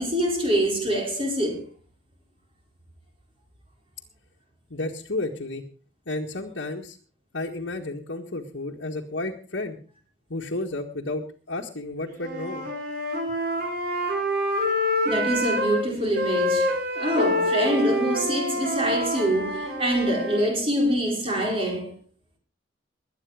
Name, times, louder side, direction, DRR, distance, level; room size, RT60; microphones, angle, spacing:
voice 1, 0.0-1.6 15.0-22.0, right 1 dB, 30° right, 4.9 m, -25 dB
voice 2, 4.7-5.6 6.1-7.0 7.3-9.8 10.3-12.7, left 2 dB, 85° left, 1.9 m, -32 dB
Wind instrument woodwind instrument, 12.2-15.8 16.1-20.4, left 1 dB, 50° right, 5.8 m, -26 dB
21.0 x 9.5 x 5.0 m
head